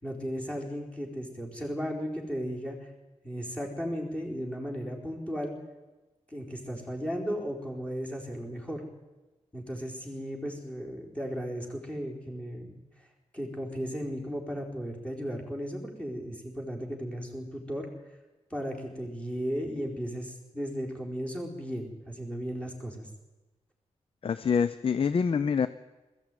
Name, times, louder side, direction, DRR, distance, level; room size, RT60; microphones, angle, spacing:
voice 1, 0.0-2.9 3.2-5.6 6.3-8.8 9.5-12.8 13.3-17.9 18.5-23.1, equal, 10° left, -1 dB, 4.5 m, -35 dB
voice 2, 24.2-25.7, left 6 dB, 50° left, 14 dB, 0.6 m, -26 dB
20.5 x 14.5 x 9.3 m, 1.1 s
wide cardioid pair, 130°, 12 cm